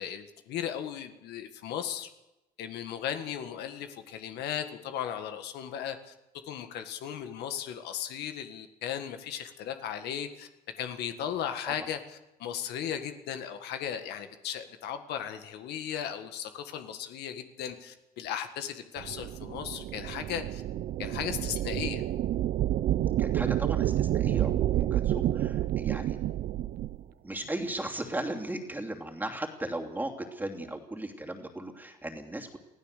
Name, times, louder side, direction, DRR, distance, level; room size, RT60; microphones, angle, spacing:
voice 1, 0.0-2.1 2.6-6.1 6.5-10.5 10.8-20.6 21.0-22.0, left 9 dB, 80° left, 7 dB, 1.7 m, -36 dB
sound 1, 19.0-27.0, right 12 dB, 60° right, 0.7 m, -29 dB
voice 2, 23.2-26.2 27.2-32.6, right 1 dB, 10° right, 2 dB, 2.8 m, -36 dB
25.0 x 15.5 x 6.7 m, 0.98 s
cardioid pair, 110°, 17 cm